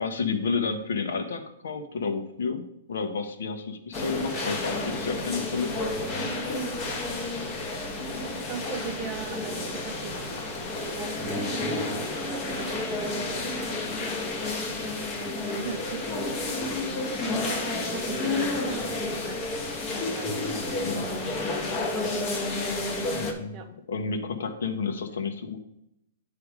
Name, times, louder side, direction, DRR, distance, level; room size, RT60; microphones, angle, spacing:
voice 1, 0.0-2.6 2.9-5.7 20.8-21.1 23.1-23.6 23.9-25.6, left 5 dB, 80° left, 6 dB, 1.1 m, -30 dB
sound 1, 3.9-23.3, left 2 dB, 20° left, 0.8 m, -30 dB
voice 2, 8.5-10.4 10.8-14.4 15.5-19.5 19.9-22.2 23.5-23.7, right 6 dB, 20° right, 7 dB, 0.5 m, -41 dB
8.6 x 3.5 x 4.8 m, 0.82 s
hypercardioid pair, 175°, 0 cm